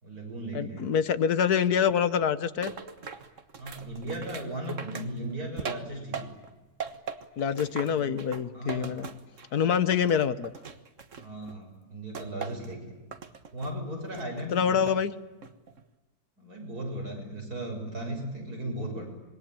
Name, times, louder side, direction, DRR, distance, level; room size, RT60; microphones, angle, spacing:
voice 1, 0.0-0.9 3.6-6.3 7.9-8.2 8.5-9.0 11.2-12.8 13.5-14.9 16.4-19.0, right 1 dB, 80° right, 2 dB, 7.0 m, -36 dB
voice 2, 0.5-2.7 7.4-9.1 9.5-10.5 14.5-15.1, left 7 dB, 80° left, 13 dB, 1.7 m, -26 dB
sound 1, 2.6-6.5 6.8-9.6 9.9-11.5 12.1-12.7 13.1-13.8 14.1-15.0 15.4-15.8, right 6 dB, 55° right, 1.8 m, -40 dB
26.5 x 22.5 x 9.0 m, 1.1 s
omnidirectional pair, 1.6 m